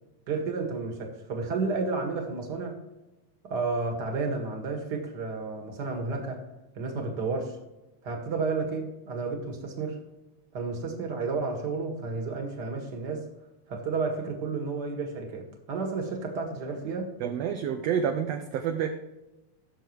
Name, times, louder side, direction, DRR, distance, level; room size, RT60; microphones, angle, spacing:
voice 1, 0.3-2.8 3.4-6.4 6.8-7.6 8.0-10.0 10.5-13.3 13.7-17.2, right 4 dB, 40° right, 2 dB, 2.0 m, -31 dB
voice 2, 17.2-18.9, right 8 dB, 75° right, 5 dB, 1.6 m, -28 dB
17.0 x 6.5 x 3.2 m, 1.0 s
omnidirectional pair, 3.5 m